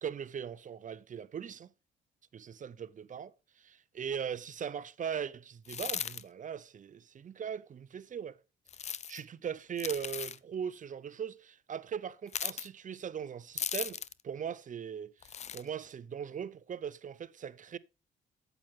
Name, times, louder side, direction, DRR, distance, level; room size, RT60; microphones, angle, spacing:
voice 1, 0.0-1.7 2.3-3.3 3.6-8.4 8.8-17.8, right 8 dB, 40° right, 0.6 m, -40 dB
sound 1, 5.6-6.2 8.7-9.2 9.8-10.4 12.3-12.7 13.6-14.2 15.2-15.6, left 8 dB, 35° left, 0.4 m, -37 dB
8.8 x 7.9 x 3.6 m
cardioid pair, 90°, 20 cm